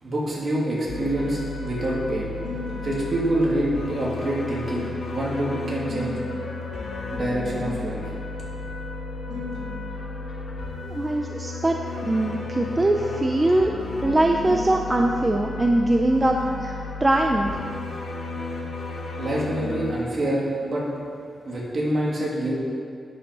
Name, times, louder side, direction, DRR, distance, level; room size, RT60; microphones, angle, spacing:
voice 1, 0.0-2.3 2.8-6.2 7.1-8.1 19.2-20.8 21.4-22.5, right 1 dB, 50° right, -5 dB, 2.7 m, -26 dB
sound 1, 0.9-19.9, left 3 dB, 85° left, 2.2 m, -33 dB
voice 2, 10.8-11.7 12.0-13.7 14.0-17.6, right 1 dB, 20° right, 2 dB, 0.6 m, -22 dB
9.9 x 8.4 x 5.4 m, 2.3 s
wide cardioid pair, 115°, 0 cm